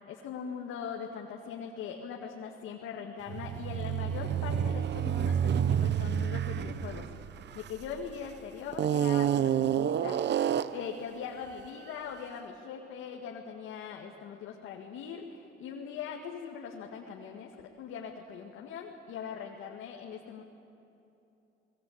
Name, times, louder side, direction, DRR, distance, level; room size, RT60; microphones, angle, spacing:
voice 1, 0.0-20.4, left 7 dB, 90° left, 0 dB, 2.0 m, -41 dB
sound 1, 3.3-8.1 8.7-10.9, right 9 dB, 60° right, 0.8 m, -29 dB
29.5 x 20.5 x 8.7 m, 2.8 s
cardioid pair, 90°, 20 cm